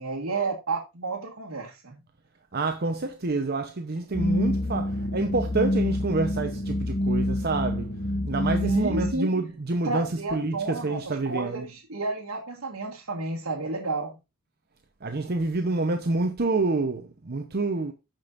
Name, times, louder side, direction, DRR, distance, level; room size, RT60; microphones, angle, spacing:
voice 1, 0.0-2.0 8.6-9.3 9.8-14.2, right 3 dB, 75° right, 1.7 m, -31 dB
voice 2, 2.5-7.9 8.3-10.1 10.3-10.5 10.8-11.6 15.0-17.9, right 3 dB, 50° right, 0.8 m, -27 dB
sound 1, 4.1-9.1, left 1 dB, 35° left, 1.1 m, -27 dB
15.5 x 5.3 x 2.5 m
head